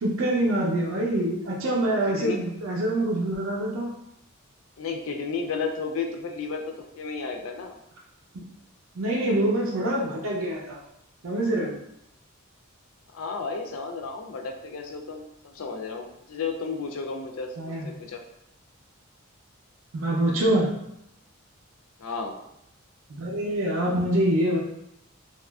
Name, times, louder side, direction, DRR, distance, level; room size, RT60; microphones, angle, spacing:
voice 1, 0.0-3.9 9.0-10.8 11.2-11.8 17.6-17.9 19.9-20.7 23.1-24.6, right 1 dB, 70° right, -1 dB, 0.5 m, -25 dB
voice 2, 2.1-2.4 4.8-6.6 7.0-7.8 13.1-18.2 22.0-22.3, left 4 dB, 70° left, 3 dB, 0.4 m, -33 dB
2.9 x 2.4 x 2.3 m, 0.80 s
head